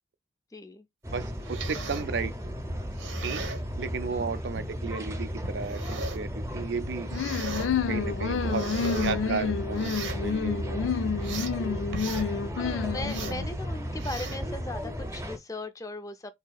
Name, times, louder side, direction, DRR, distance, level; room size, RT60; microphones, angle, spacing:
voice 1, 0.5-0.9 4.1-4.4 12.6-16.3, left 2 dB, 20° left, 0.4 m, -38 dB
sound 1, 1.0-15.4, equal, 15° right, 0.7 m, -35 dB
voice 2, 1.1-2.3 3.2-3.4 3.8-7.1 7.9-8.7 8.9-10.8, right 5 dB, 70° right, 0.4 m, -34 dB
sound 2, 1.2-2.1 2.8-3.6 4.5-4.7 5.4-6.3 7.0-7.7 8.2-9.2 9.7-10.2 10.8-11.6 11.9-12.3 13.0-13.4 13.9-14.5 15.0-15.2, right 3 dB, 85° right, 0.9 m, -38 dB
sound 3, 7.1-13.5, left 6 dB, 90° left, 0.4 m, -30 dB
3.9 x 2.7 x 2.3 m
head